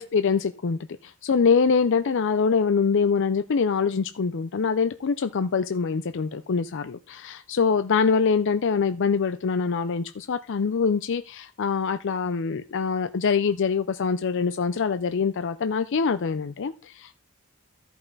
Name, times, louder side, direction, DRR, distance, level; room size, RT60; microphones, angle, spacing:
voice 1, 0.0-17.2, left 5 dB, 60° left, 11 dB, 0.5 m, -24 dB
13.5 x 5.6 x 4.0 m, 0.33 s
head